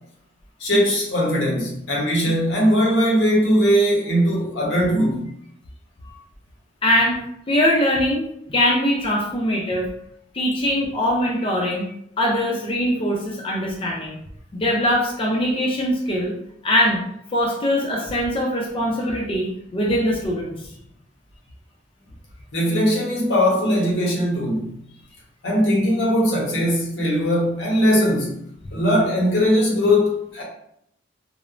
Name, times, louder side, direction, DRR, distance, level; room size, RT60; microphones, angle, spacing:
voice 1, 0.6-5.3 22.5-24.7 25.4-28.4 28.7-30.4, equal, 80° left, 0.9 m, -20 dB
voice 2, 6.8-7.2 7.5-8.2 8.5-9.9 10.3-11.9 12.2-14.2 14.5-16.3 16.6-17.0 17.3-20.5, equal, 30° left, 0.4 m, -21 dB
3.0 x 2.0 x 2.4 m
head